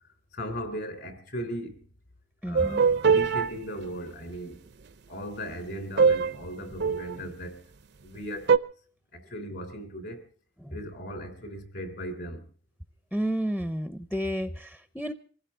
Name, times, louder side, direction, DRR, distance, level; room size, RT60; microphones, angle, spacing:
voice 1, 0.3-1.8 2.4-4.6 5.1-7.6 8.0-8.6 9.1-10.2 10.7-12.4, equal, 60° left, 3.4 m, -37 dB
voice 2, 2.4-2.8 10.6-10.8 13.1-15.1, equal, 5° left, 0.7 m, -31 dB
sound 1, 2.6-3.5 6.0-6.4 6.7-7.3 8.5-8.6, right 5 dB, 60° right, 0.7 m, -21 dB
24.5 x 16.0 x 3.7 m
head